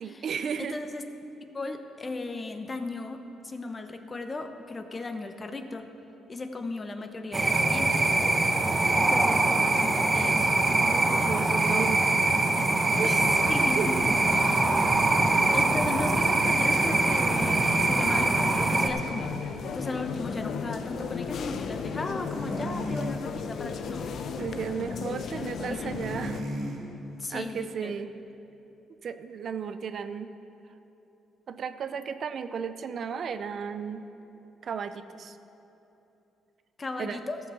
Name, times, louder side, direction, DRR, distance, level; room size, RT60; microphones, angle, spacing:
voice 1, 0.0-0.8 10.8-12.1 13.0-13.1 13.5-14.0 24.4-26.4 27.3-28.1 29.0-30.3 31.5-34.0 34.6-35.4 37.0-37.2, right 6 dB, 60° right, 11 dB, 0.5 m, -34 dB
voice 2, 0.6-1.0 1.5-3.2 3.4-5.9 6.3-8.1 8.9-10.6 11.2-11.9 13.0-13.9 14.3-14.7 15.5-19.4 19.7-24.2 25.3-26.0 27.2-27.9 36.8-37.4, left 3 dB, 30° left, 7 dB, 0.9 m, -36 dB
sound 1, 7.3-18.9, right 2 dB, 25° right, 1.0 m, -23 dB
sound 2, 12.9-26.4, left 6 dB, 65° left, 0.6 m, -36 dB
sound 3, 22.2-23.2 25.8-26.8, equal, 80° right, 2.6 m, -35 dB
14.0 x 6.2 x 7.0 m, 2.9 s
cardioid pair, 90°, 0 cm